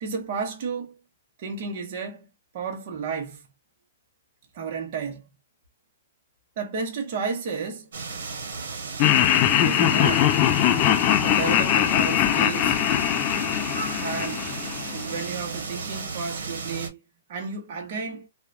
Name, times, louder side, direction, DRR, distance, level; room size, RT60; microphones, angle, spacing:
voice 1, 0.0-1.0 1.4-2.3 2.5-3.4 4.5-5.2 6.6-7.9 9.6-10.3 11.2-12.8 14.0-14.5 14.9-17.0 17.3-18.3, right 5 dB, 40° right, 0.7 m, -32 dB
sound 1, 7.9-16.9, right 4 dB, 75° right, 0.9 m, -34 dB
Laughter, 9.0-15.2, left 11 dB, 30° left, 0.3 m, -21 dB
2.7 x 2.1 x 2.3 m
hypercardioid pair, 160°, 0 cm